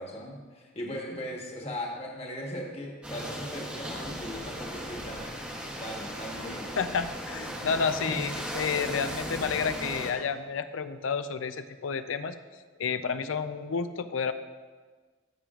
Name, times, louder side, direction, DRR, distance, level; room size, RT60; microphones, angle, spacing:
voice 1, 0.0-5.3 5.8-6.7 7.9-8.2, equal, 30° left, -1 dB, 1.3 m, -38 dB
sound 1, 3.0-10.1, equal, 5° right, 0.9 m, -37 dB
voice 2, 6.8-12.4 12.8-14.3, left 6 dB, 85° left, 11 dB, 0.5 m, -30 dB
14.5 x 6.8 x 2.4 m, 1.4 s
head